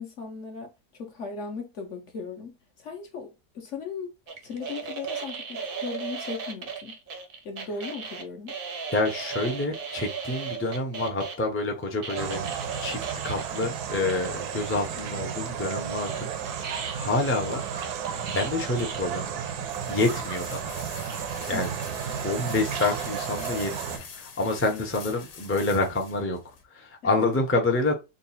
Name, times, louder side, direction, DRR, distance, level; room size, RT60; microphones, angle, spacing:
voice 1, 0.0-7.0 7.4-8.5 21.5-21.6 27.0-27.2, left 5 dB, 55° left, 0.9 m, -37 dB
sound 1, 4.3-11.4 12.0-13.6 14.2-14.3 15.0-19.3, right 6 dB, 50° right, 0.6 m, -37 dB
voice 2, 8.9-12.5 12.8-16.7 17.0-17.9 18.3-19.5 19.9-20.6 21.5-21.7 22.2-26.4 26.7-27.9, left 2 dB, 15° left, 0.4 m, -28 dB
sound 2, 12.2-24.0, right 8 dB, 75° right, 1.1 m, -33 dB
sound 3, 19.4-26.6, left 6 dB, 75° left, 1.3 m, -45 dB
3.7 x 2.4 x 4.1 m
omnidirectional pair, 1.7 m